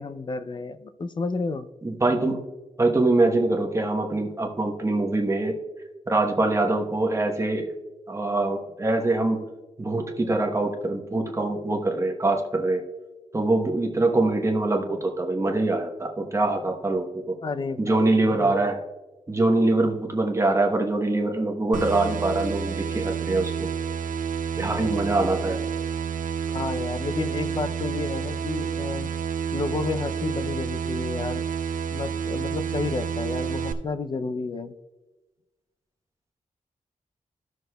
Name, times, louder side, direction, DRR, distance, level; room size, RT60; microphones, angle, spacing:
voice 1, 0.0-1.7 17.4-18.6 26.5-29.1 29.5-31.4 31.9-34.8, left 4 dB, 35° left, 11 dB, 0.4 m, -31 dB
voice 2, 1.8-2.4 2.8-5.6 6.1-7.7 8.1-9.4 9.8-12.8 13.3-17.4 17.8-18.8 19.3-23.5 24.5-25.6, right 2 dB, 20° right, 2 dB, 0.9 m, -24 dB
sound 1, 21.7-33.7, right 7 dB, 75° right, 0.5 m, -29 dB
14.5 x 6.2 x 2.2 m, 1.1 s
wide cardioid pair, 130°, 14 cm